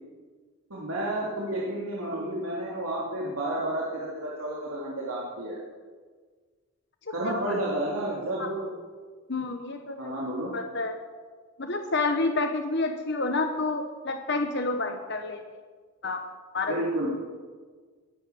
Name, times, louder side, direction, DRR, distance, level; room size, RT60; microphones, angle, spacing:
voice 1, 0.7-5.6 7.1-8.7 10.0-10.5 16.7-17.1, right 1 dB, 80° right, -5 dB, 2.9 m, -31 dB
voice 2, 7.1-7.6 8.4-8.5 9.3-10.1 10.5-11.0 11.6-15.4 16.0-16.3 16.5-16.8, left 3 dB, 50° left, 5 dB, 1.1 m, -29 dB
21.0 x 9.2 x 7.1 m, 1.5 s
head